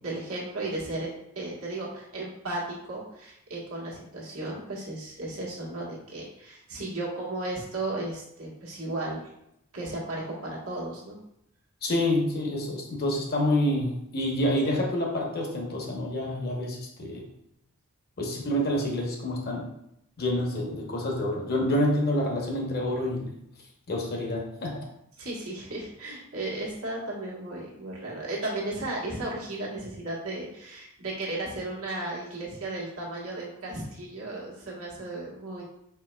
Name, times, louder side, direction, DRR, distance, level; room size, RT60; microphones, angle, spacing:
voice 1, 0.0-1.1 1.3-9.2 9.7-11.2 25.2-35.6, right 2 dB, 75° right, -4 dB, 1.3 m, -35 dB
voice 2, 11.8-17.2 18.2-19.7 20.2-23.4 23.9-24.8, left 1 dB, 45° left, 0 dB, 0.9 m, -27 dB
4.5 x 4.0 x 2.2 m, 0.78 s
head